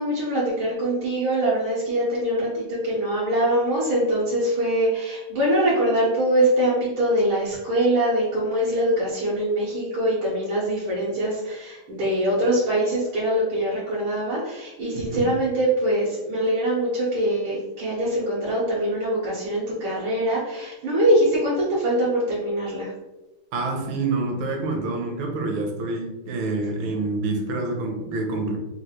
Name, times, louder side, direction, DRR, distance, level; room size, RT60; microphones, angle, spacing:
voice 1, 0.0-22.9, right 1 dB, 90° right, -9 dB, 2.0 m, -23 dB
voice 2, 23.5-28.6, right 3 dB, 75° right, 2 dB, 1.5 m, -27 dB
4.6 x 2.4 x 2.9 m, 1.0 s
omnidirectional pair, 2.2 m